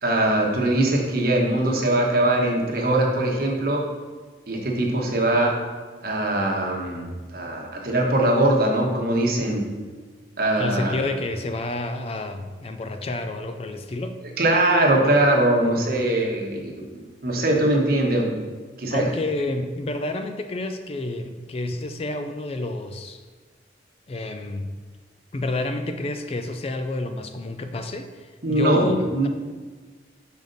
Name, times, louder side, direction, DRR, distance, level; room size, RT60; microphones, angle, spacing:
voice 1, 0.0-3.9 4.5-5.6 6.0-9.7 10.4-11.0 14.4-18.4 18.8-19.1 28.4-28.8 29.1-29.3, right 1 dB, 55° right, 0 dB, 1.2 m, -21 dB
voice 2, 10.6-14.2 18.9-23.2 24.1-24.7 25.3-29.3, left 2 dB, 30° left, 7 dB, 0.3 m, -29 dB
6.5 x 5.1 x 3.9 m, 1.4 s
head